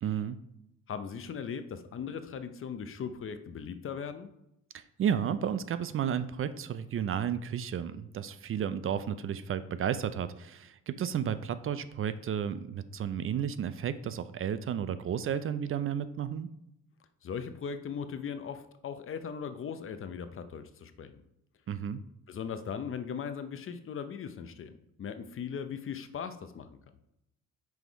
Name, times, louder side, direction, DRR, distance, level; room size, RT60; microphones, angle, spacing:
voice 1, 0.0-0.4 4.7-16.5 21.7-22.0, right 8 dB, 45° right, 13 dB, 0.4 m, -32 dB
voice 2, 0.9-4.3 17.2-21.2 22.3-26.8, left 7 dB, 45° left, 10 dB, 0.6 m, -39 dB
6.2 x 3.5 x 4.6 m, 0.83 s
cardioid pair, 90°, 30 cm